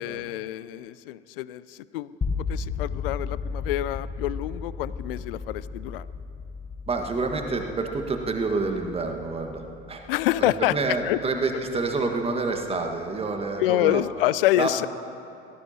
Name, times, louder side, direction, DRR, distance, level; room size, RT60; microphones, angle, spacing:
voice 1, 0.0-2.1 2.5-6.1 10.1-10.7 11.0-11.2 13.6-14.9, left 15 dB, 60° left, 18 dB, 0.5 m, -26 dB
sound 1, 2.2-12.2, left 5 dB, 20° left, 1.2 m, -35 dB
voice 2, 6.9-10.1 10.4-14.0 14.5-14.9, right 3 dB, 20° right, 4 dB, 1.6 m, -28 dB
24.5 x 18.0 x 2.9 m, 2.7 s
figure-of-eight pair, 75°, 32 cm